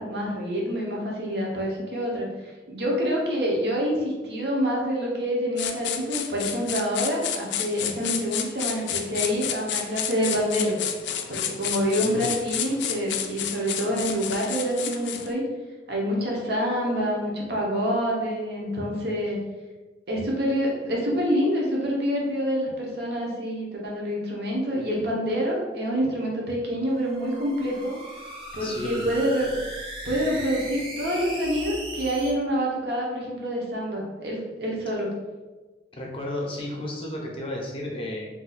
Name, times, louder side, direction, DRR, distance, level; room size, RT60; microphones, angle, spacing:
voice 1, 0.0-10.8 11.3-15.4 15.9-19.4 20.1-27.9 28.5-29.5 30.0-35.1, equal, 60° right, -2 dB, 0.8 m, -27 dB
sound 1, 5.6-15.3, left 9 dB, 70° left, 0.3 m, -31 dB
sound 2, 26.9-32.3, right 1 dB, 30° right, 0.6 m, -38 dB
voice 2, 28.6-29.1 35.9-38.3, left 1 dB, 30° left, -1 dB, 0.6 m, -32 dB
2.6 x 2.3 x 3.9 m, 1.2 s
head